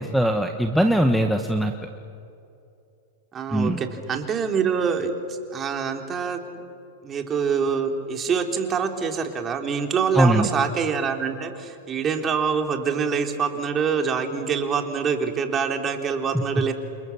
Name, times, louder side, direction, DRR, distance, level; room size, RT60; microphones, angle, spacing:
voice 1, 0.0-1.7 3.5-3.8 10.1-10.5, right 1 dB, ahead, 3 dB, 1.4 m, -20 dB
voice 2, 3.3-5.1 5.5-6.4 7.0-16.7, right 6 dB, 25° right, 4 dB, 3.3 m, -25 dB
29.0 x 27.5 x 7.3 m, 2.6 s
hypercardioid pair, 105°, 0 cm